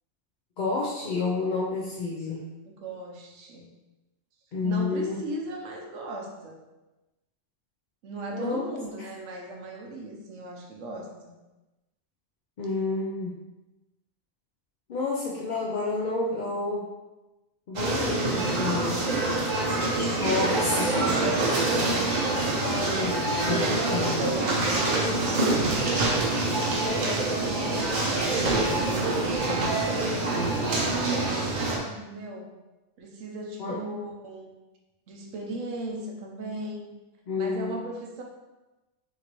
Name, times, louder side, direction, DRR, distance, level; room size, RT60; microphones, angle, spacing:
voice 1, 0.6-2.4 4.5-5.2 8.3-9.1 12.6-13.4 14.9-16.9 17.7-19.0 20.2-21.6 22.6-24.2 30.2-30.3 33.6-33.8 37.3-37.8, left 3 dB, 55° left, -4 dB, 0.5 m, -30 dB
voice 2, 2.7-3.7 4.6-6.6 8.0-11.3 19.1-19.8 23.7-26.0 27.0-28.2 29.8-32.5 33.0-34.5 35.1-36.9 37.4-38.2, right 1 dB, 75° right, 1 dB, 1.1 m, -37 dB
sound 1, 17.7-31.8, right 2 dB, 45° right, 0.7 m, -26 dB
sound 2, 20.0-27.9 28.4-31.0, left 1 dB, 80° left, 1.9 m, -43 dB
5.9 x 2.7 x 3.0 m, 1.1 s
omnidirectional pair, 1.3 m